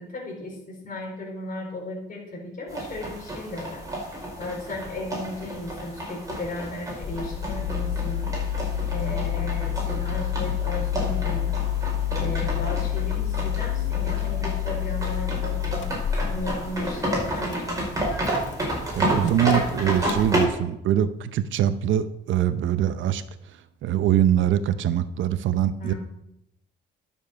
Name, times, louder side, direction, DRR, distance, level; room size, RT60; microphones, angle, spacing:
voice 1, 0.0-3.8 4.4-8.4 8.9-11.6 12.2-15.9 16.3-17.9 25.8-26.0, left 1 dB, 45° left, -3 dB, 4.3 m, -35 dB
sound 1, 2.7-20.4, right 1 dB, 15° right, 5.3 m, -31 dB
Engine starting, 7.0-20.3, left 10 dB, 70° left, 1.3 m, -28 dB
voice 2, 19.0-23.2 23.8-25.9, right 10 dB, 75° right, 13 dB, 0.7 m, -23 dB
12.0 x 7.2 x 5.6 m, 0.80 s
cardioid pair, 90°, 20 cm